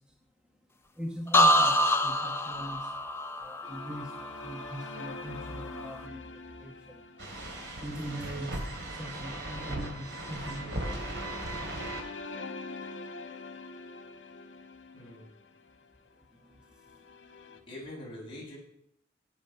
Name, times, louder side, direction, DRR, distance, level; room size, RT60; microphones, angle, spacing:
voice 1, 1.0-2.9 3.4-7.0 7.8-8.6 8.9-11.4, equal, 5° right, 1 dB, 1.2 m, -41 dB
sound 1, 1.3-5.1 5.5-6.0, equal, 15° left, 0.7 m, -26 dB
sound 2, 3.6-17.6, left 3 dB, 80° left, 1.6 m, -45 dB
sound 3, 7.2-12.0, right 1 dB, 70° right, 3.2 m, -37 dB
voice 2, 14.9-15.3 17.7-18.6, left 1 dB, 30° left, -4 dB, 7.3 m, -43 dB
16.5 x 9.3 x 5.8 m, 0.73 s
head